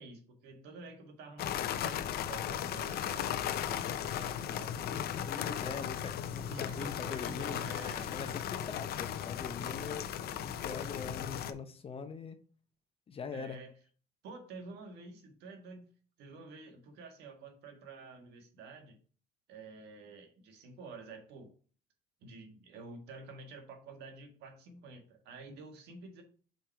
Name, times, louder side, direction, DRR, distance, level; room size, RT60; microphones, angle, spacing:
voice 1, 0.0-5.3 6.3-8.1 13.3-13.7 14.2-15.9 16.2-19.0 19.5-21.5 22.2-26.2, right 3 dB, 80° right, 1.7 m, -49 dB
sound 1, 1.4-11.5, left 10 dB, 65° left, 0.6 m, -36 dB
voice 2, 5.3-7.6 8.1-12.4 13.1-13.6, left 5 dB, 35° left, 0.8 m, -42 dB
5.2 x 4.7 x 4.4 m
cardioid pair, 110°, 17 cm